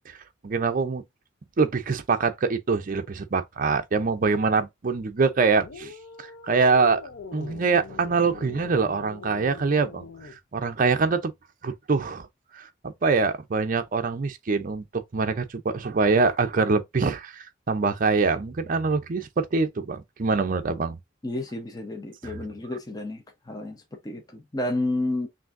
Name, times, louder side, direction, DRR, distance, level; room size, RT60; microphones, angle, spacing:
voice 1, 0.1-1.0 1.6-7.0 7.3-11.3 11.6-12.3 12.5-21.0 22.2-22.4, right 4 dB, 45° right, 0.5 m, -24 dB
sound 1, 5.6-10.4, left 4 dB, 70° left, 0.6 m, -42 dB
voice 2, 21.2-25.3, left 2 dB, 20° left, 0.7 m, -31 dB
5.9 x 2.6 x 2.5 m
head